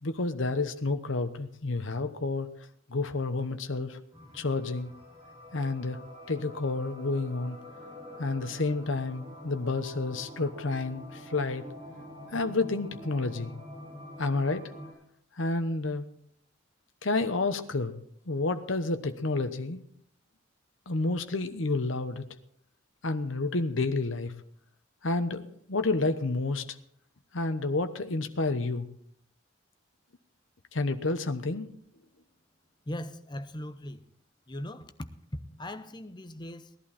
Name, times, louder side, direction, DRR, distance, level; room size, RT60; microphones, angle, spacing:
voice 1, 0.0-2.5 2.9-4.0 4.3-4.9 5.5-6.0 6.3-7.6 8.2-11.7 12.3-13.5 14.2-14.7 15.4-16.1 17.0-17.9 18.3-19.8 20.9-22.2 23.0-24.3 25.0-26.6 27.3-28.9 30.7-31.7, left 3 dB, 75° left, 9 dB, 1.0 m, -30 dB
sound 1, 4.1-14.9, left 1 dB, 25° right, 7.9 m, -46 dB
voice 2, 32.9-34.0 34.5-34.9 35.3-36.7, left 1 dB, 20° left, 10 dB, 0.8 m, -39 dB
18.5 x 11.5 x 4.3 m, 0.67 s
head